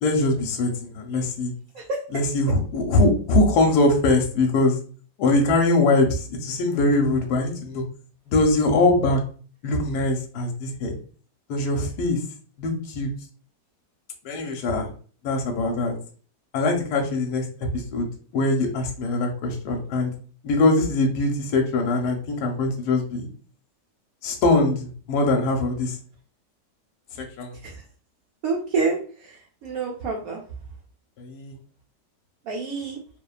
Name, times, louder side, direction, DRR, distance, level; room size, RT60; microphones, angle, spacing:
voice 1, 0.0-1.5 2.1-4.8 5.2-7.8 8.3-9.2 9.6-11.0 11.5-12.2 12.6-13.1 14.2-14.9 15.2-15.9 16.5-17.4 17.7-18.1 18.3-20.1 20.4-23.3 24.2-25.9 27.4-27.5 31.2-31.6, left 2 dB, 70° left, 2 dB, 1.1 m, -22 dB
voice 2, 28.4-30.4 32.5-33.0, right 4 dB, 70° right, -1 dB, 0.8 m, -28 dB
3.0 x 2.1 x 2.3 m, 0.42 s
omnidirectional pair, 1.9 m